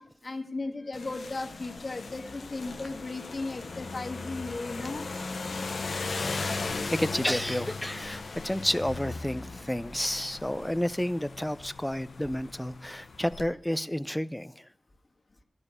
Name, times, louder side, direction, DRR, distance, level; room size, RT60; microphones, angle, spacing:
voice 1, 0.0-5.1, left 3 dB, 50° left, 1.7 m, -36 dB
sound 1, 0.9-13.5, left 3 dB, 70° left, 0.9 m, -37 dB
voice 2, 6.9-14.5, left 1 dB, 10° left, 0.5 m, -30 dB
13.0 x 5.5 x 8.2 m
cardioid pair, 50°, 0 cm